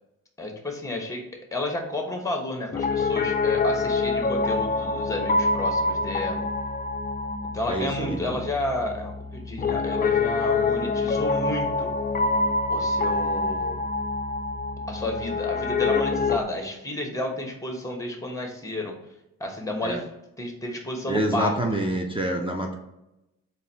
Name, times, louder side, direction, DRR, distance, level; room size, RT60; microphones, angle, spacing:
voice 1, 0.4-1.2 1.5-6.5 7.5-11.9 12.7-13.8 14.9-18.9 19.4-20.0 20.4-21.6, left 1 dB, 10° left, 2 dB, 1.1 m, -31 dB
Piano, 2.7-16.4, left 3 dB, 25° left, 0.4 m, -26 dB
voice 2, 7.7-8.4 19.8-20.0 21.1-22.8, right 1 dB, 15° right, 1 dB, 0.7 m, -27 dB
3.8 x 2.6 x 4.0 m, 0.91 s
cardioid pair, 70°, 34 cm